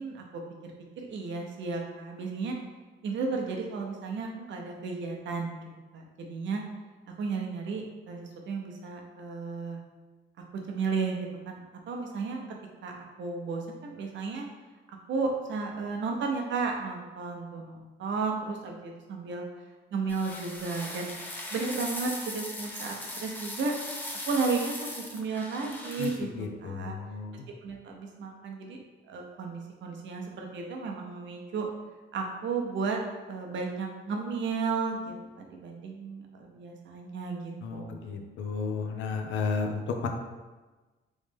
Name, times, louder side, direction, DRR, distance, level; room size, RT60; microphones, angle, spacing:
voice 1, 0.0-2.6 3.0-5.6 5.9-6.6 7.1-9.8 10.7-12.4 12.8-12.9 13.2-14.4 15.1-19.4 19.9-21.1 21.5-23.7 24.3-26.9 27.5-28.8 29.1-31.7 32.1-33.0 33.3-38.0, right 4 dB, 70° right, 1 dB, 0.7 m, -33 dB
sound 1, 20.1-26.2, left 1 dB, 10° left, 0.6 m, -39 dB
voice 2, 26.4-27.5 37.6-40.1, left 4 dB, 75° left, 4 dB, 0.6 m, -33 dB
3.2 x 3.1 x 3.5 m, 1.2 s
cardioid pair, 90°, 20 cm